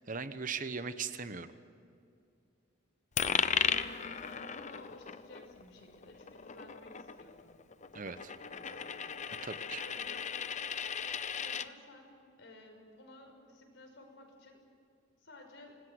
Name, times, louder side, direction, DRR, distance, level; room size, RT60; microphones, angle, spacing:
voice 1, 0.1-1.5 7.9-8.3 9.4-9.8, right 5 dB, 40° right, 11 dB, 1.0 m, -39 dB
Coin (dropping), 3.2-11.7, left 7 dB, 35° left, 0.7 m, -36 dB
voice 2, 3.6-7.6 8.5-9.0 9.8-10.3 11.4-14.6 15.2-15.7, left 2 dB, 65° left, 3 dB, 5.9 m, -55 dB
25.5 x 20.0 x 7.8 m, 2.5 s
head